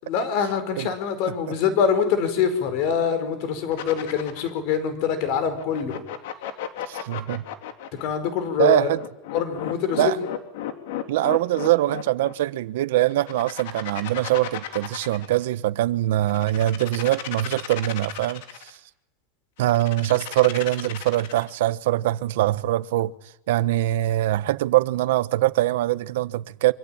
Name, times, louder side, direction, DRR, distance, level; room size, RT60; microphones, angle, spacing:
voice 1, 0.0-6.0 8.0-8.9 9.3-10.1, left 7 dB, 45° left, 5.0 m, -24 dB
sound 1, 3.7-4.6 5.6-8.0 8.9-12.3 13.1-15.4 16.2-18.7 19.6-21.5, left 11 dB, 70° left, 3.3 m, -34 dB
voice 2, 6.9-7.4 8.6-9.0 10.0-10.2 11.1-18.8 19.6-23.1 23.5-26.7, right 15 dB, 80° right, 1.2 m, -23 dB
26.5 x 25.0 x 9.0 m
supercardioid pair, 180°, 0 cm